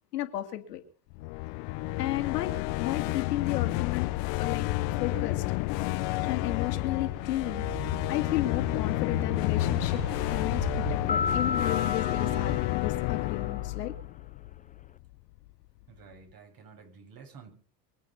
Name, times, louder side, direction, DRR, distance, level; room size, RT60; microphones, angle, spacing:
voice 1, 0.1-0.8 2.0-4.1 4.4-5.4 6.2-7.6 8.1-13.9, left 13 dB, 90° left, 6 dB, 2.4 m, -33 dB
sound 1, 1.1-15.1, left 22 dB, 65° left, 1.1 m, -30 dB
sound 2, 1.8-12.6, right 6 dB, 80° right, 5.1 m, -42 dB
sound 3, 11.1-13.6, left 5 dB, 15° left, 0.6 m, -33 dB
voice 2, 15.9-17.5, right 5 dB, 45° right, 4 dB, 7.9 m, -51 dB
24.5 x 8.6 x 5.6 m, 0.41 s
hypercardioid pair, 85°, 47 cm